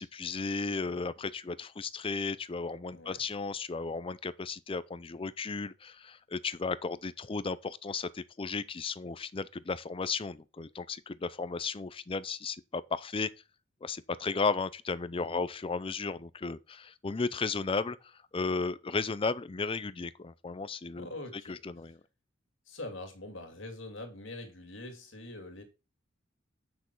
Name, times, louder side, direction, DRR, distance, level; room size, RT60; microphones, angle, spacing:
voice 1, 0.0-13.3 13.8-21.1 21.5-22.0, left 4 dB, 25° left, 0.5 m, -34 dB
voice 2, 2.9-3.2 15.2-15.5 20.9-21.6 22.7-25.6, left 2 dB, 65° left, 2.4 m, -44 dB
8.3 x 6.1 x 4.5 m
head